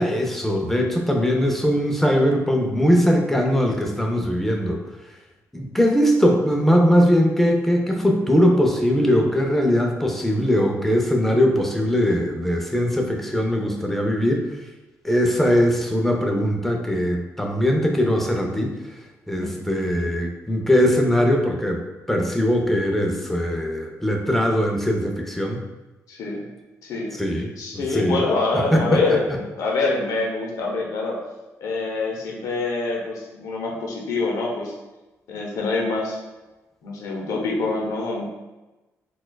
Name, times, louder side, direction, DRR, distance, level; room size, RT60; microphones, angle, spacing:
voice 1, 0.0-4.8 5.5-14.4 15.0-18.7 19.3-21.8 22.1-25.6 27.2-27.5 27.7-28.2 28.7-29.0, equal, 5° left, 1 dB, 0.5 m, -20 dB
voice 2, 26.1-26.4 26.8-27.2 27.6-31.2 31.6-34.7 35.3-36.2 36.8-38.2, left 3 dB, 85° left, -2 dB, 0.8 m, -25 dB
4.2 x 2.3 x 2.3 m, 1.1 s
cardioid pair, 95°, 6 cm